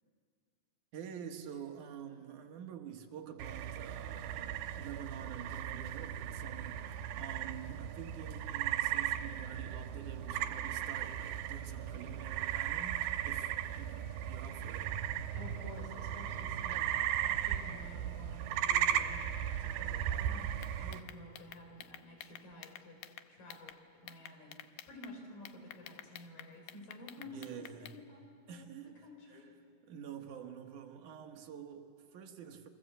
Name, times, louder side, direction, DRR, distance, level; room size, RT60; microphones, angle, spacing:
voice 1, 0.9-15.0 27.2-28.0 28.5-29.1 29.3-29.4 29.9-32.7, right 8 dB, 60° right, 2.5 m, -48 dB
sound 1, 3.4-21.0, right 10 dB, 90° right, 2.9 m, -36 dB
voice 2, 15.4-23.0 23.3-23.8 24.0-29.5, left 1 dB, 60° left, 5.7 m, -52 dB
sound 2, 20.6-23.8 24.1-25.1 25.5-28.0, left 12 dB, 75° left, 2.1 m, -50 dB
29.0 x 24.0 x 7.9 m
omnidirectional pair, 4.6 m